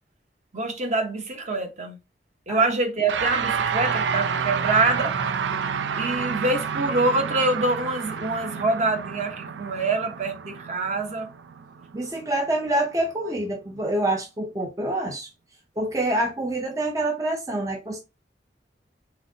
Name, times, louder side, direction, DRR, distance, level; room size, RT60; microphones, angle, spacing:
voice 1, 0.5-2.0 2.5-5.1 6.0-11.3, right 2 dB, 40° right, 0.9 m, -25 dB
sound 1, 3.1-12.6, right 6 dB, 80° right, 0.4 m, -29 dB
voice 2, 11.9-15.3 15.8-18.0, right 1 dB, 20° right, 0.5 m, -26 dB
4.0 x 3.9 x 2.8 m
head